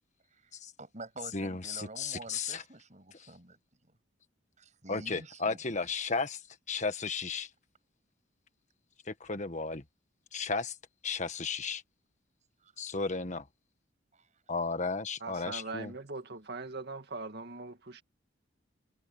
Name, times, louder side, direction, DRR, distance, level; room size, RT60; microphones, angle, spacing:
voice 1, 0.8-3.6 4.6-5.6 12.6-12.7 14.1-14.3, right 2 dB, 40° right, 7.5 m, -48 dB
voice 2, 1.3-2.6 3.2-3.3 4.9-6.4 6.7-7.5 9.0-9.8 10.3-10.8 11.0-11.8 12.8-13.5 14.5-15.9, left 4 dB, 40° left, 1.5 m, -34 dB
voice 3, 15.2-18.0, right 3 dB, 55° right, 2.2 m, -41 dB
head